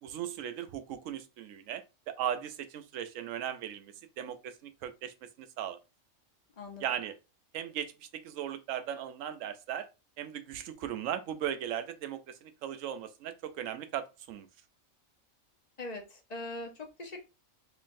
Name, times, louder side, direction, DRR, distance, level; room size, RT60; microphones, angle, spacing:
voice 1, 0.0-5.8 6.8-7.2 7.5-9.9 10.2-14.5, right 10 dB, 75° right, 0.9 m, -38 dB
voice 2, 15.8-17.3, left 2 dB, 35° left, 0.8 m, -41 dB
3.7 x 3.3 x 2.5 m
omnidirectional pair, 1.4 m